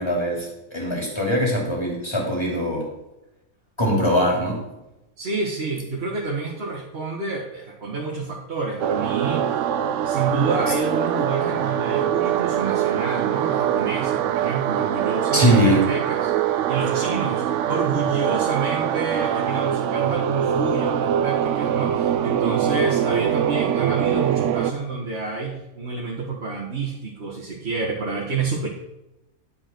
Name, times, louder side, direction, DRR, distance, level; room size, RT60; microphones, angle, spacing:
voice 1, 0.0-2.9 3.8-4.6 15.3-15.8, equal, 20° left, -2 dB, 3.0 m, -21 dB
voice 2, 5.2-9.6 10.0-28.7, right 4 dB, 50° right, -3 dB, 1.6 m, -28 dB
sound 1, 8.8-24.7, right 10 dB, 70° right, 0.9 m, -23 dB
10.5 x 7.6 x 4.5 m, 0.93 s
omnidirectional pair, 1.5 m